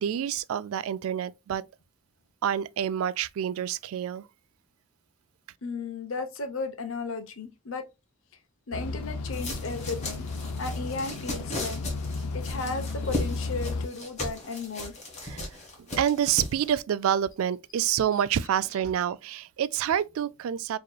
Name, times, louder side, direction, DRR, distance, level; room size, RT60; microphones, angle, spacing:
voice 1, 0.0-1.6 2.4-4.2 15.2-15.5 15.9-20.8, right 9 dB, 75° right, 0.3 m, -27 dB
voice 2, 5.6-7.8 8.7-10.2 10.6-11.8 12.3-15.0 18.1-18.5, left 3 dB, 65° left, 0.8 m, -35 dB
sound 1, 8.7-13.9, left 3 dB, 85° left, 0.4 m, -34 dB
sound 2, 9.3-16.7, left 1 dB, 30° left, 1.2 m, -37 dB
4.7 x 3.0 x 2.2 m
head